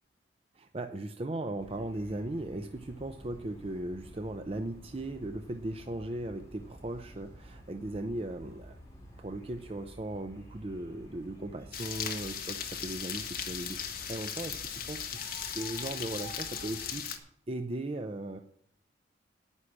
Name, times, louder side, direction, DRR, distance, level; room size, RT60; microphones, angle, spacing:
voice 1, 0.5-8.8 9.2-18.4, right 1 dB, 30° right, 7 dB, 0.5 m, -38 dB
sound 1, 1.6-17.0, equal, 15° left, 3.8 m, -51 dB
sound 2, 11.7-17.2, left 8 dB, 50° left, 1.4 m, -38 dB
9.9 x 9.7 x 6.0 m, 0.68 s
head